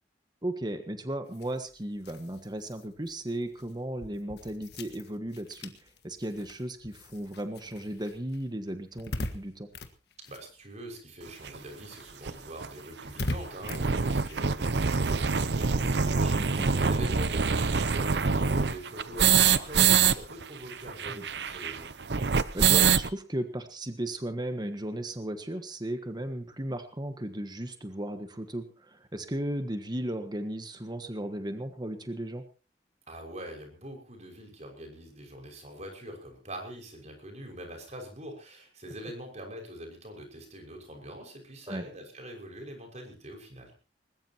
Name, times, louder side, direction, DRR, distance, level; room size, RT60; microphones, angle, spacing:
voice 1, 0.4-5.7 6.0-9.7 16.3-16.9 21.1-21.2 22.5-32.4 41.7-41.8, right 1 dB, 25° right, 7 dB, 1.5 m, -35 dB
sound 1, 1.3-11.2 11.5-18.4, left 1 dB, 65° left, 1.6 m, -43 dB
voice 2, 10.2-21.9 33.1-43.7, right 1 dB, 40° right, 3 dB, 6.0 m, -43 dB
sound 2, 11.5-11.6 12.3-12.4 12.6-12.7 13.0-13.1 13.5-20.2 20.4-20.5 20.7-23.1, right 6 dB, 70° right, 0.8 m, -25 dB
21.0 x 20.0 x 3.0 m, 0.34 s
head